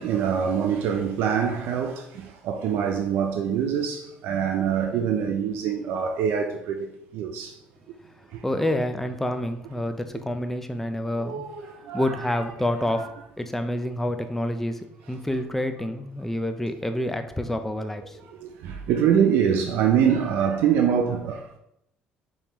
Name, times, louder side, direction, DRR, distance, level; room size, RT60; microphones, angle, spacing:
voice 1, 0.0-6.9 7.1-7.5 8.3-8.4 11.2-12.2 18.3-21.6, right 8 dB, 75° right, 0.4 m, -24 dB
voice 2, 8.4-11.4 11.9-13.0 13.4-18.2, left 1 dB, 5° left, 0.5 m, -28 dB
5.3 x 3.2 x 2.9 m
cardioid pair, 105°, 4 cm